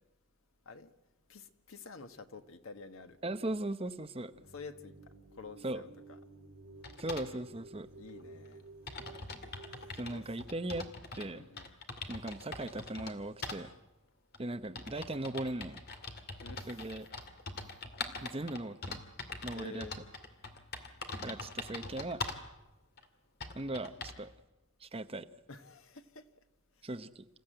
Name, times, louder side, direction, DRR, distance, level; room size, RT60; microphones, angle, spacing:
voice 1, 1.3-3.2 4.5-4.9 5.4-6.2 8.0-8.6 10.1-10.2 11.3-11.7 16.4-16.9 19.5-20.0 25.5-26.3, left 4 dB, 85° left, 1.4 m, -49 dB
voice 2, 3.2-4.3 5.6-5.8 7.0-7.9 9.9-10.9 11.1-11.5 12.1-13.7 14.4-15.8 16.7-17.1 18.2-19.0 19.4-19.9 21.2-22.2 23.5-24.3 24.8-25.3 26.8-27.3, right 1 dB, 30° right, 0.9 m, -38 dB
sound 1, 4.3-10.0, right 2 dB, 60° right, 4.6 m, -53 dB
sound 2, 6.8-7.3 8.2-8.3 8.5-8.6 8.9-11.3 11.6-13.1 13.4-13.6 14.3-22.5 23.0-23.1 23.4-24.2, left 3 dB, 50° left, 2.3 m, -43 dB
27.5 x 15.0 x 9.0 m
head